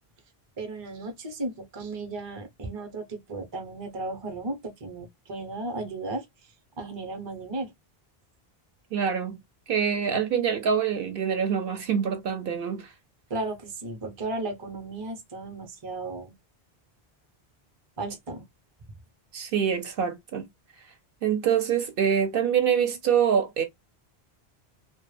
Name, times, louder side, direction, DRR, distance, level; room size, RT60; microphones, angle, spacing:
voice 1, 0.6-6.2 6.8-7.7 13.3-16.3 18.0-18.4, right 2 dB, 35° right, 0.5 m, -35 dB
voice 2, 8.9-9.4 9.7-12.9 19.3-20.5 21.2-23.6, right 7 dB, 65° right, 0.7 m, -25 dB
2.1 x 2.0 x 3.1 m
omnidirectional pair, 1.1 m